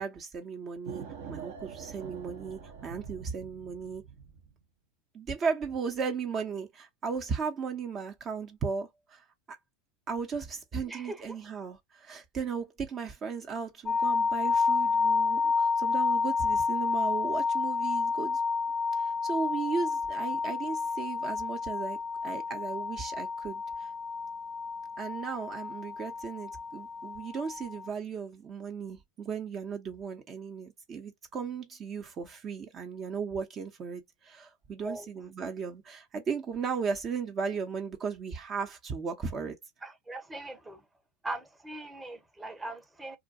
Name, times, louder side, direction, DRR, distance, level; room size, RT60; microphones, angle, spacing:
voice 1, 0.0-4.1 5.1-9.6 10.1-18.4 18.9-23.9 25.0-39.6, right 5 dB, 35° right, 0.7 m, -36 dB
sound 1, 0.9-4.6, right 6 dB, 70° right, 0.8 m, -44 dB
voice 2, 10.9-11.4 25.9-26.0 34.7-35.1 39.8-40.8 41.2-43.2, right 2 dB, 10° right, 0.9 m, -40 dB
sound 2, 13.9-27.9, left 4 dB, 20° left, 0.4 m, -30 dB
2.4 x 2.1 x 2.6 m
hypercardioid pair, 90°, 0 cm